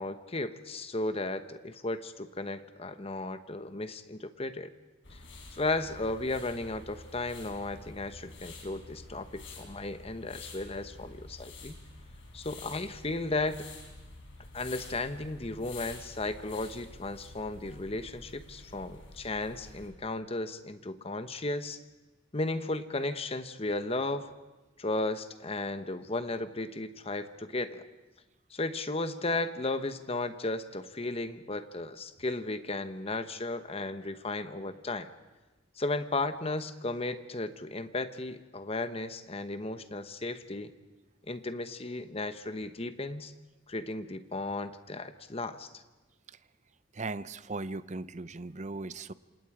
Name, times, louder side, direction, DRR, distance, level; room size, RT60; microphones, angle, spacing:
voice 1, 0.0-4.7 5.5-11.8 12.3-13.7 14.5-21.8 22.3-24.3 24.8-27.8 28.5-35.1 35.8-40.7 41.3-43.3 43.7-45.7, left 2 dB, 30° left, 10 dB, 1.1 m, -35 dB
sound 1, 5.0-19.9, left 2 dB, 65° left, 5.1 m, -48 dB
voice 2, 47.0-49.1, right 3 dB, 35° right, 15 dB, 0.7 m, -38 dB
27.5 x 26.5 x 5.0 m, 1.1 s
head